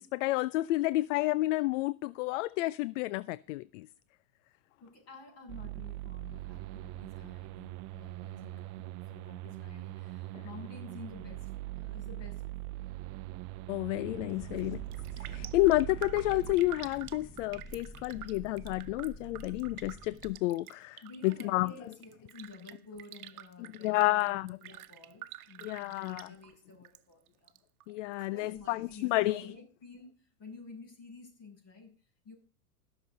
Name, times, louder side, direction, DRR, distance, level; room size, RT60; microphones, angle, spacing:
voice 1, 0.0-3.9 10.3-10.4 13.7-14.8 15.2-21.7 23.8-24.6 25.6-26.3 27.9-29.5, left 19 dB, 60° left, 0.5 m, -30 dB
voice 2, 4.8-12.8 14.5-14.7 21.0-27.5 28.3-32.3, left 3 dB, 35° left, 7.3 m, -51 dB
sound 1, 5.5-16.5, right 17 dB, 40° right, 0.7 m, -42 dB
sound 2, 13.9-20.3, right 1 dB, 5° right, 1.2 m, -49 dB
Raindrop, 14.4-14.7 14.9-27.0 27.3-28.3 28.6-28.7, right 13 dB, 80° right, 1.0 m, -49 dB
20.5 x 6.9 x 3.9 m
hypercardioid pair, 120°, 43 cm